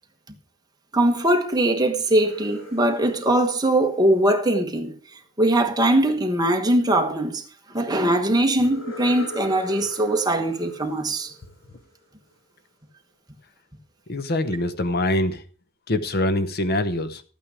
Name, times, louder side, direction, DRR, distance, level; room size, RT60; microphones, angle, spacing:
voice 1, 0.9-4.9 5.4-7.4 7.7-11.3, right 1 dB, 20° right, 1.2 m, -21 dB
sound 1, 2.0-4.9 8.6-12.3, left 2 dB, 85° left, 6.5 m, -42 dB
voice 2, 14.1-15.4 15.9-17.2, left 1 dB, 50° left, 0.8 m, -24 dB
13.0 x 9.0 x 4.9 m
head